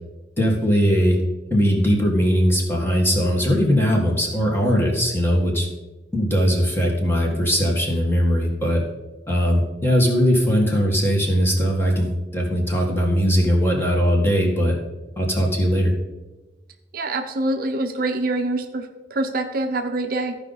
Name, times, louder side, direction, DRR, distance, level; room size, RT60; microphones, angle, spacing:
voice 1, 0.4-1.2 1.5-5.7 6.1-8.8 9.3-14.8 15.2-15.9, equal, 15° left, -1 dB, 1.6 m, -20 dB
voice 2, 16.9-20.4, right 2 dB, 50° right, 6 dB, 0.6 m, -25 dB
14.5 x 5.1 x 4.0 m, 1.1 s
head